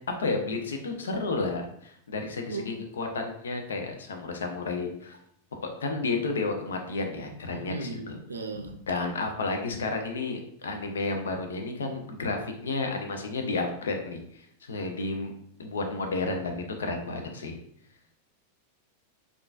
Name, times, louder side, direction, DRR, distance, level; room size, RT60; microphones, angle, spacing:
voice 1, 0.2-5.2 5.5-8.2 8.9-15.3 15.6-17.5, left 3 dB, 65° left, 4 dB, 0.5 m, -32 dB
voice 2, 7.5-8.7, right 3 dB, 75° right, 6 dB, 0.4 m, -36 dB
3.7 x 2.4 x 2.3 m, 0.67 s
figure-of-eight pair, 90°, 0 cm